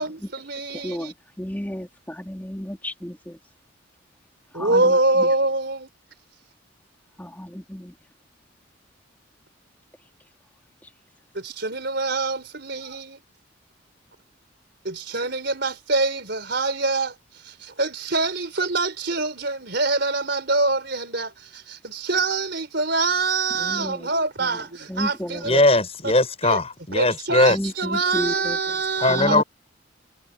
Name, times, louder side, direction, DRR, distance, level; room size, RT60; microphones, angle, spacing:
voice 1, 0.0-1.1 4.5-5.9 11.3-13.2 14.8-25.6 26.0-26.1 26.4-26.6 26.9-29.4, right 3 dB, 55° right, 4.9 m, -25 dB
voice 2, 0.7-3.4 4.5-5.3 7.2-7.9 23.6-24.1 24.4-24.5 24.9-25.6 27.5-28.6 29.1-29.4, equal, 10° left, 3.5 m, -32 dB
voice 3, 25.4-27.6 29.0-29.4, left 2 dB, 30° left, 7.2 m, -19 dB
head